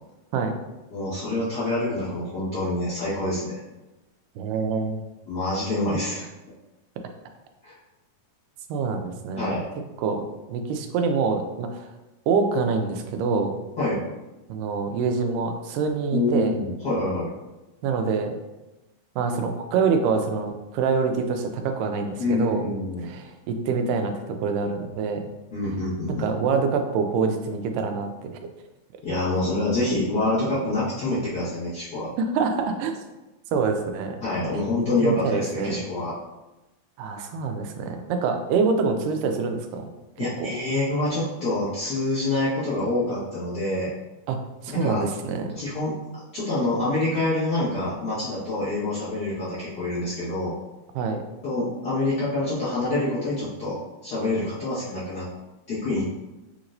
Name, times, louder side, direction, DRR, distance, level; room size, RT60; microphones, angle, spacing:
voice 1, 0.9-3.6 5.3-6.3 7.6-7.8 9.4-9.7 13.8-14.0 16.1-17.3 22.2-23.0 25.5-26.3 29.0-32.1 34.2-36.1 40.2-43.9 44.7-45.0 45.5-45.9 46.3-50.5 51.4-53.8 54.0-55.3 55.7-56.0, left 2 dB, 40° left, -11 dB, 1.6 m, -26 dB
voice 2, 4.4-5.0 8.7-9.5 10.0-10.2 10.5-11.9 12.3-13.6 14.5-16.6 17.8-18.4 19.2-22.6 23.0-25.3 26.1-28.3 32.2-33.0 33.5-34.2 34.5-34.6 35.0-35.8 37.0-39.9 40.4-40.5 44.3-44.4 44.6-45.6 51.0-51.2, right 5 dB, 85° right, 5 dB, 2.2 m, -25 dB
6.5 x 3.0 x 2.5 m, 1.0 s
omnidirectional pair, 3.7 m